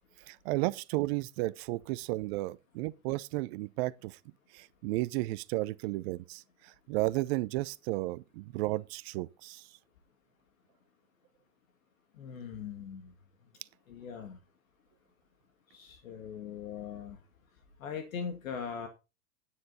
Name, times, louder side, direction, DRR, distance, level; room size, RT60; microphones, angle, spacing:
voice 1, 0.3-4.2 4.5-9.6, right 19 dB, 45° right, 0.7 m, -33 dB
voice 2, 12.1-13.1 13.9-14.4 15.7-17.2 17.8-18.9, left 7 dB, 70° left, 2.3 m, -40 dB
10.0 x 9.4 x 4.2 m
hypercardioid pair, 110°, 42 cm